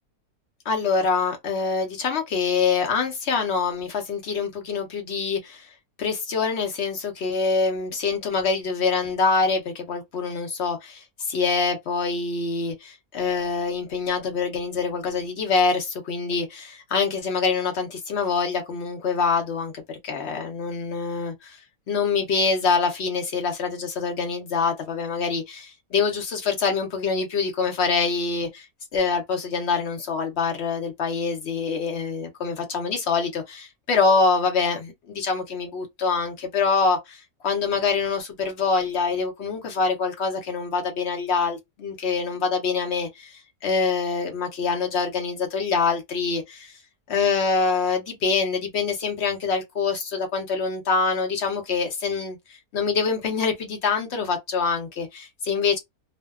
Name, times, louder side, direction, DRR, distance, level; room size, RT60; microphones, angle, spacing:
voice 1, 0.7-5.7 6.0-21.6 21.9-28.7 28.9-46.7 47.1-55.8, left 4 dB, 65° left, 0.6 m, -25 dB
2.5 x 2.2 x 2.3 m
omnidirectional pair, 1.7 m